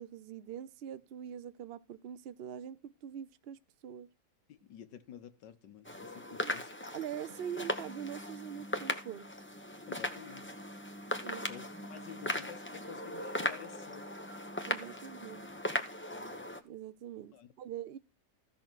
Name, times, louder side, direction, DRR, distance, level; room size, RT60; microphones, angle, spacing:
voice 1, 0.0-4.1 6.3-6.5 6.9-9.3 11.2-11.5 14.7-15.5 16.6-18.0, right 9 dB, 85° right, 0.5 m, -43 dB
voice 2, 4.5-6.8 9.9-10.5 11.3-14.1 17.3-17.5, left 9 dB, 80° left, 1.7 m, -51 dB
sound 1, 5.8-16.6, left 1 dB, 10° left, 0.7 m, -38 dB
15.0 x 6.3 x 4.5 m
omnidirectional pair, 1.9 m